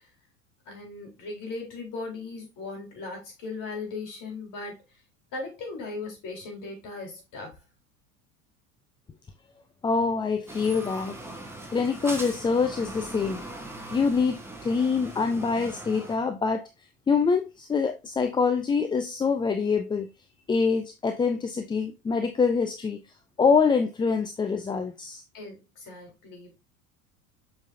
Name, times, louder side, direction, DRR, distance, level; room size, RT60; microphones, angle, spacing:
voice 1, 0.7-4.8 5.3-7.5 11.3-11.4 25.3-26.5, left 3 dB, 45° left, 4.1 m, -38 dB
voice 2, 9.8-11.2 11.7-13.4 13.9-16.7 17.1-20.1 20.5-23.0 23.4-25.2, left 5 dB, 10° left, 0.4 m, -25 dB
sound 1, 10.5-16.2, right 1 dB, 5° right, 1.6 m, -40 dB
7.2 x 5.2 x 2.6 m
hypercardioid pair, 80°, 44 cm